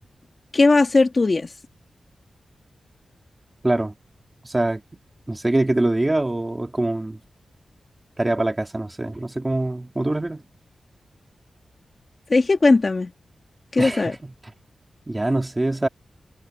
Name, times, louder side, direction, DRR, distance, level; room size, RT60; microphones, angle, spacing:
voice 1, 0.5-1.5 12.3-13.1 13.7-14.1, left 3 dB, 35° left, 2.5 m, -18 dB
voice 2, 3.6-3.9 4.4-4.8 5.3-7.2 8.2-10.4 13.8-14.2 15.1-15.9, right 2 dB, 20° right, 2.7 m, -23 dB
wide cardioid pair, 115°, 0 cm